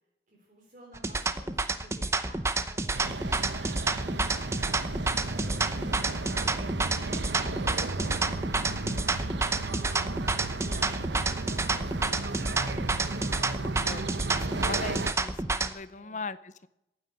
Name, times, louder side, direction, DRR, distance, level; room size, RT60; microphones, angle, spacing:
voice 1, 0.3-10.2 10.7-12.6 15.9-16.2, equal, 45° right, -1 dB, 3.5 m, -54 dB
sound 1, 0.9-15.7, right 3 dB, 15° right, 0.8 m, -29 dB
sound 2, 2.9-15.1, right 2 dB, 85° right, 0.9 m, -35 dB
voice 2, 13.8-16.7, left 4 dB, 40° left, 16 dB, 0.6 m, -40 dB
14.5 x 9.7 x 9.2 m, 0.88 s
head